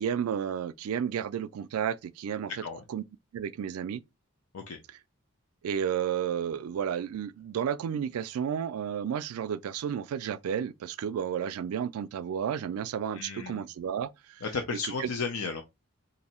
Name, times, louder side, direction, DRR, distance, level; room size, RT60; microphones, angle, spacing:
voice 1, 0.0-2.5 2.9-3.0 3.3-4.0 5.6-14.1 14.7-15.1, right 8 dB, 90° right, 0.3 m, -32 dB
voice 2, 13.1-13.6 14.4-15.6, left 4 dB, 80° left, 0.6 m, -34 dB
2.8 x 2.5 x 4.2 m
head